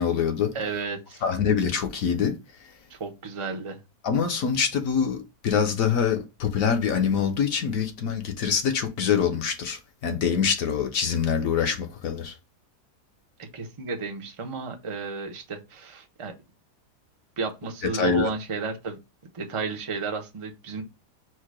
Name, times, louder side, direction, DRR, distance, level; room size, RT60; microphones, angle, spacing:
voice 1, 0.0-0.5 1.2-2.4 4.0-12.3 17.9-18.3, left 7 dB, 65° left, 1.0 m, -25 dB
voice 2, 0.5-1.2 2.9-3.8 13.4-16.3 17.4-19.0 19.3-20.8, right 4 dB, 50° right, 0.3 m, -32 dB
4.6 x 2.1 x 4.6 m
omnidirectional pair, 1.8 m